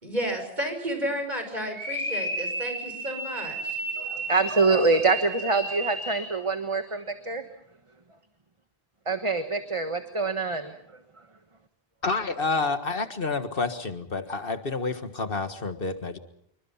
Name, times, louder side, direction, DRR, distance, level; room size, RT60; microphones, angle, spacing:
voice 1, 0.0-3.8, equal, 45° right, 5 dB, 6.3 m, -32 dB
sound 1, 1.7-6.4, right 2 dB, 25° left, 7.5 m, -33 dB
voice 2, 4.0-7.4 9.1-11.0, right 3 dB, 30° right, 8 dB, 1.4 m, -25 dB
voice 3, 12.0-16.2, left 3 dB, 65° left, 9 dB, 1.8 m, -29 dB
27.0 x 23.5 x 5.7 m, 0.73 s
omnidirectional pair, 1.0 m